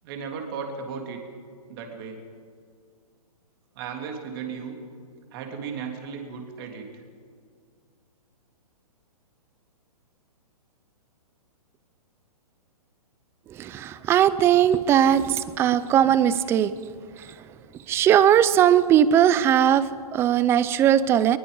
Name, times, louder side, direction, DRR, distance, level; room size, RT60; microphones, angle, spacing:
voice 1, 0.0-1.2 1.7-2.2 3.7-4.8 5.3-7.0, right 6 dB, 35° right, 2 dB, 3.3 m, -35 dB
voice 2, 13.6-16.7 17.9-21.4, right 10 dB, 10° right, 16 dB, 0.5 m, -19 dB
22.5 x 21.5 x 5.5 m, 2.1 s
hypercardioid pair, 155°, 20 cm